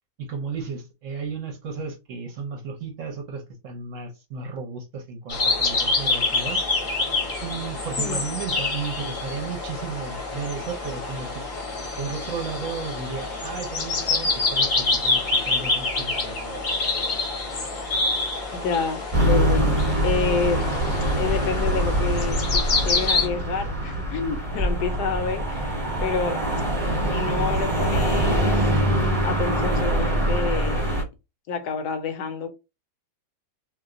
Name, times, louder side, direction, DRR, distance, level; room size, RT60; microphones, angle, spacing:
voice 1, 0.2-6.6 7.4-11.4 12.0-16.7, right 5 dB, 60° right, 0.9 m, -34 dB
sound 1, 5.3-23.3, left 3 dB, 40° left, 0.7 m, -26 dB
voice 2, 18.5-20.7 21.2-25.7 26.0-26.5 27.1-30.9 31.5-32.5, left 5 dB, 80° left, 1.1 m, -29 dB
sound 2, 19.1-31.0, right 1 dB, 30° right, 0.8 m, -24 dB
2.8 x 2.1 x 3.6 m
omnidirectional pair, 1.7 m